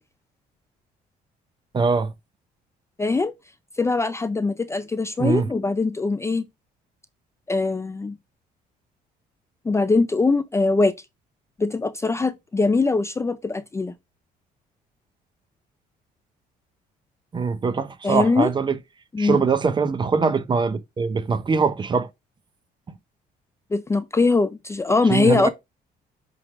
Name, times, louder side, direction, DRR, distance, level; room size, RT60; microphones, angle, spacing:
voice 1, 1.7-2.1 5.2-5.5 17.3-18.8 19.2-22.1 25.1-25.5, right 5 dB, 25° right, 0.7 m, -22 dB
voice 2, 3.0-3.3 3.8-6.4 7.5-8.2 9.7-10.9 11.6-13.9 18.0-18.5 19.1-19.4 23.7-25.5, left 3 dB, 15° left, 0.4 m, -22 dB
8.1 x 3.3 x 3.6 m
cardioid pair, 110°, 17 cm